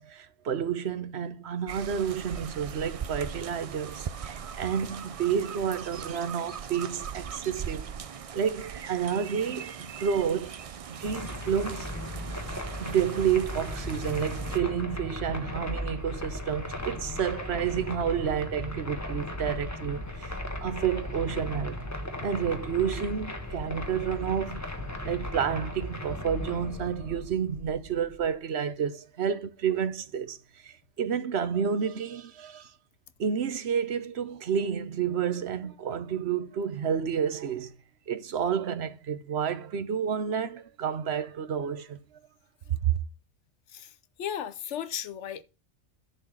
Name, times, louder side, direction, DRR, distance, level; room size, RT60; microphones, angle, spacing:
voice 1, 0.0-7.9 8.3-10.6 10.9-11.9 12.8-21.8 22.2-24.6 25.0-32.7 33.2-37.7 38.1-42.2 42.8-43.0, right 8 dB, 70° right, 1.1 m, -30 dB
sound 1, 1.7-14.6, right 7 dB, 50° right, 0.4 m, -40 dB
sound 2, 11.0-28.3, left 1 dB, 15° left, 1.2 m, -37 dB
voice 2, 43.7-45.4, left 9 dB, 90° left, 1.1 m, -36 dB
10.5 x 4.3 x 6.2 m
omnidirectional pair, 1.2 m